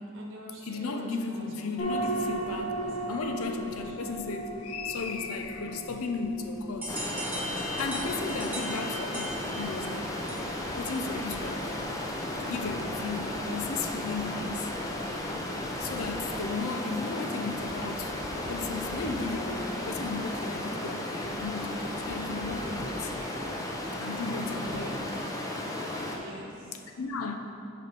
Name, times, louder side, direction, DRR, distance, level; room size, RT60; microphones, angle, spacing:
voice 1, 0.1-4.0 8.4-8.9 24.6-25.0 26.1-26.8, right 1 dB, 65° right, -3 dB, 1.1 m, -45 dB
voice 2, 0.7-2.7 3.1-7.0 7.8-10.2 10.8-11.7 12.5-14.7 15.8-18.1 18.5-23.1 24.0-24.9 27.0-27.4, left 4 dB, 85° left, 5 dB, 0.6 m, -35 dB
sound 1, 1.8-16.6, right 2 dB, 55° left, 1.7 m, -40 dB
sound 2, 6.8-11.3, equal, 10° right, 1.0 m, -39 dB
Stream, 6.9-26.2, left 1 dB, 15° left, 0.6 m, -34 dB
6.7 x 5.1 x 5.3 m, 2.6 s
head